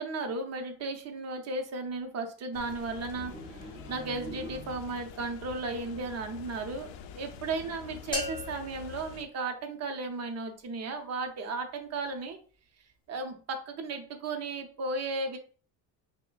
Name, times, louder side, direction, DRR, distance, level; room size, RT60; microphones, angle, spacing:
voice 1, 0.0-12.4 13.1-15.4, right 3 dB, 40° right, 5 dB, 0.7 m, -35 dB
sound 1, 2.5-9.2, left 8 dB, 85° left, 0.5 m, -46 dB
sound 2, 3.1-5.2, right 2 dB, 15° right, 1.0 m, -45 dB
sound 3, 8.1-10.1, left 1 dB, 10° left, 1.0 m, -39 dB
6.2 x 2.2 x 2.4 m, 0.41 s
cardioid pair, 120°, 41 cm